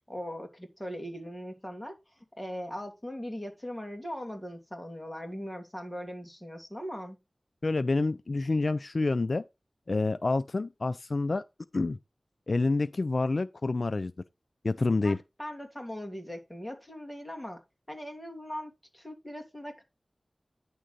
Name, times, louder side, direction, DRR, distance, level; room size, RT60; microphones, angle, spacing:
voice 1, 0.1-2.0 2.4-7.2 15.0-17.6 17.9-19.8, equal, 15° left, 2.6 m, -40 dB
voice 2, 7.6-9.4 9.9-11.4 11.7-12.0 12.5-14.1 14.6-15.2, left 3 dB, 65° left, 0.4 m, -28 dB
10.0 x 3.6 x 6.6 m
wide cardioid pair, 55°, 0 cm